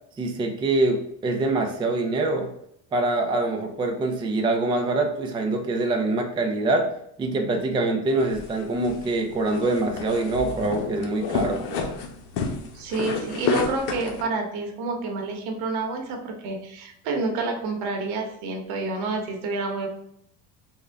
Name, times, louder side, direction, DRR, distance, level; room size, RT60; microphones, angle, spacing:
voice 1, 0.2-2.5 2.9-6.9 7.2-11.9, right 2 dB, 15° right, 3 dB, 0.4 m, -24 dB
sound 1, 8.2-14.2, left 4 dB, 90° left, 0.8 m, -30 dB
voice 2, 12.7-19.9, right 3 dB, 75° right, 3 dB, 1.0 m, -29 dB
3.6 x 2.2 x 3.3 m, 0.73 s
cardioid pair, 120°, 38 cm